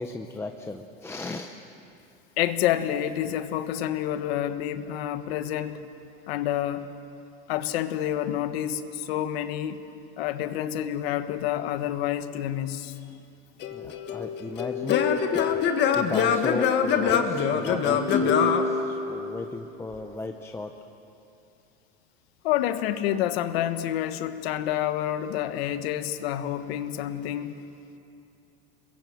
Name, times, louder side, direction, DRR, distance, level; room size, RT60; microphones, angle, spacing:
voice 1, 0.0-1.6 12.9-13.3 13.7-15.1 15.3-20.7, left 2 dB, 10° left, 4 dB, 0.7 m, -36 dB
voice 2, 2.4-5.8 6.3-6.9 7.5-9.8 10.2-12.9 22.4-27.5, left 11 dB, 85° left, 10 dB, 1.5 m, -28 dB
Singing / Plucked string instrument, 13.6-19.5, left 7 dB, 35° left, 1.7 m, -24 dB
29.5 x 22.0 x 7.8 m, 2.7 s
cardioid pair, 155°, 30 cm